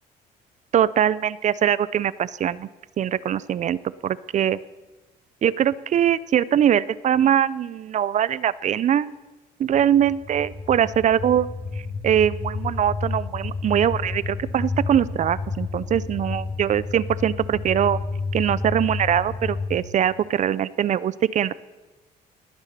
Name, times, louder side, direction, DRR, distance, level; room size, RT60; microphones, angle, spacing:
voice 1, 0.7-2.7 3.0-4.6 5.4-9.1 9.6-11.5 12.0-18.0 18.3-21.5, right 10 dB, 45° right, 19 dB, 0.5 m, -22 dB
sound 1, 9.7-19.8, left 3 dB, 45° left, 3.9 m, -31 dB
19.5 x 9.0 x 6.8 m, 1.2 s
cardioid pair, 110°, 17 cm